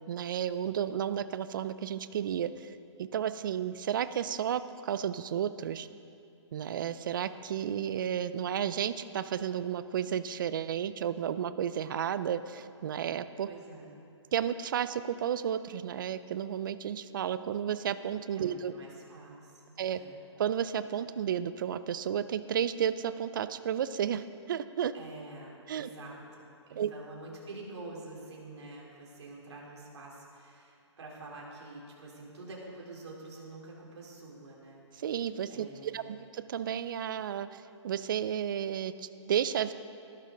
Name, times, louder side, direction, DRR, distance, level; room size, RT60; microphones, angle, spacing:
voice 1, 0.0-5.9 6.5-13.5 14.3-18.7 19.8-20.0 20.4-24.9 25.7-25.9 26.8-26.9 35.0-39.7, right 9 dB, 45° right, 14 dB, 0.5 m, -32 dB
voice 2, 13.5-14.0 18.3-20.2 24.9-34.8 35.5-36.2, right 2 dB, 65° right, -3 dB, 3.6 m, -47 dB
14.0 x 12.0 x 3.9 m, 2.5 s
hypercardioid pair, 155°, 15 cm